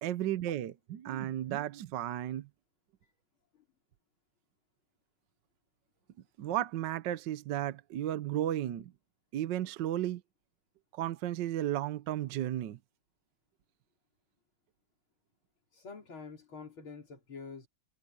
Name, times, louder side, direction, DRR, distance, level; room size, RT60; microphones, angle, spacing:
voice 1, 0.0-2.5 6.4-8.9 9.3-10.2 10.9-12.8, right 12 dB, 65° right, 1.3 m, -34 dB
voice 2, 15.7-17.7, left 5 dB, 70° left, 4.7 m, -47 dB
omnidirectional pair, 2.3 m